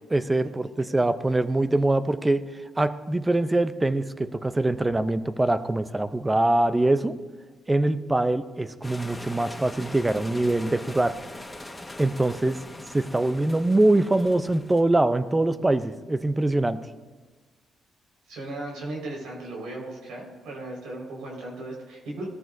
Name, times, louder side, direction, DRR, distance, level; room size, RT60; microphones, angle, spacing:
voice 1, 0.1-2.5 2.8-7.2 7.7-11.2 12.0-12.6 12.9-16.8, right 2 dB, 15° right, 12 dB, 0.7 m, -23 dB
sound 1, 8.8-14.8, left 1 dB, 10° left, 1.5 m, -41 dB
voice 2, 18.3-22.3, right 2 dB, 85° right, -1 dB, 5.0 m, -36 dB
18.5 x 13.5 x 2.7 m, 1.3 s
cardioid pair, 90°, 0 cm